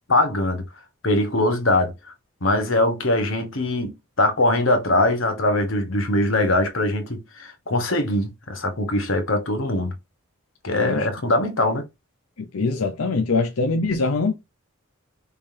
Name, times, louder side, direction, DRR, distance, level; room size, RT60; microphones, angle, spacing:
voice 1, 0.1-0.6 1.0-1.9 2.4-3.9 4.2-9.9 10.6-11.8, left 1 dB, 65° left, 1.3 m, -22 dB
voice 2, 12.4-14.3, left 3 dB, 85° left, 0.7 m, -23 dB
5.4 x 3.5 x 2.8 m
head